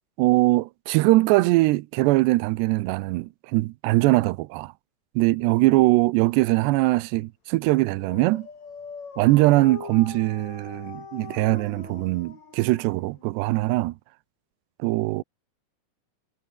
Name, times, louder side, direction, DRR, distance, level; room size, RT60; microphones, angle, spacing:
voice 1, 0.2-4.7 5.2-8.5 9.2-13.9 14.8-15.2, right 20 dB, 85° right, 2.5 m, -21 dB
Dog, 7.8-13.4, left 5 dB, 35° left, 4.9 m, -41 dB
omnidirectional pair, 5.7 m